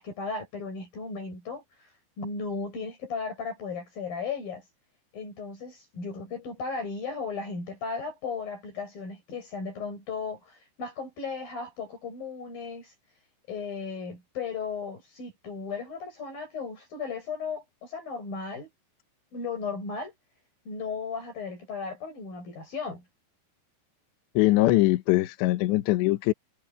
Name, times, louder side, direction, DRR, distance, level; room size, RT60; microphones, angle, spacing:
voice 1, 0.0-4.6 5.1-12.9 13.5-18.7 19.3-20.1 20.7-23.0, left 5 dB, 50° left, 8.5 m, -36 dB
voice 2, 24.4-26.3, left 18 dB, 75° left, 3.2 m, -22 dB
omnidirectional pair, 5.3 m